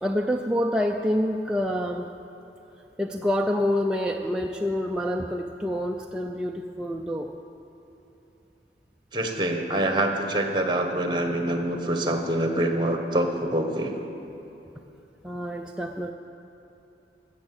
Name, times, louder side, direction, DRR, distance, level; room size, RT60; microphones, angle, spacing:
voice 1, 0.0-2.1 3.0-7.3 15.2-16.1, equal, 5° right, 1 dB, 0.4 m, -27 dB
voice 2, 9.1-13.9, right 1 dB, 25° right, 4 dB, 1.2 m, -25 dB
15.0 x 7.2 x 7.7 m, 3.0 s
head